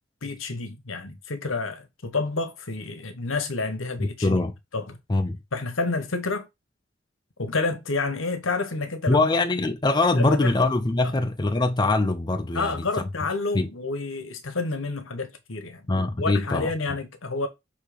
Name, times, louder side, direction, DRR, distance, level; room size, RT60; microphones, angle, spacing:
voice 1, 0.2-4.5 4.7-5.0 5.5-6.5 7.4-9.3 10.1-10.5 12.5-15.9 16.2-17.5, left 3 dB, 75° left, 1.2 m, -29 dB
voice 2, 4.0-4.5 5.1-5.4 9.1-13.0 13.5-13.7 15.9-16.7, left 2 dB, 20° left, 0.6 m, -23 dB
6.5 x 2.9 x 5.0 m
head